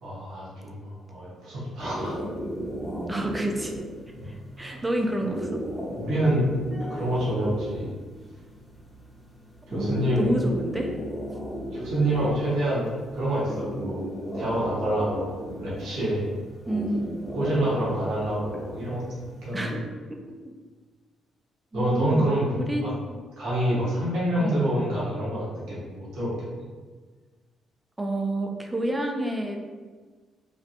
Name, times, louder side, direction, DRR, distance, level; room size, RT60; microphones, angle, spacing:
voice 1, 0.0-2.2 3.1-3.2 4.2-4.3 4.6-4.8 5.9-6.4 6.9-7.9 9.7-10.3 11.7-14.0 14.3-16.3 17.3-19.8 21.7-22.9 23.4-26.5, right 1 dB, 80° right, -8 dB, 1.1 m, -27 dB
sound 1, 1.8-19.8, equal, ahead, 0.8 m, -36 dB
voice 2, 3.1-3.7 4.3-5.6 9.7-10.9 16.7-17.1 19.5-19.7 20.1-20.2 21.7-23.2 24.4-24.6 28.0-29.6, right 1 dB, 15° right, 3 dB, 0.4 m, -29 dB
3.2 x 2.4 x 2.7 m, 1.4 s
cardioid pair, 90°, 0 cm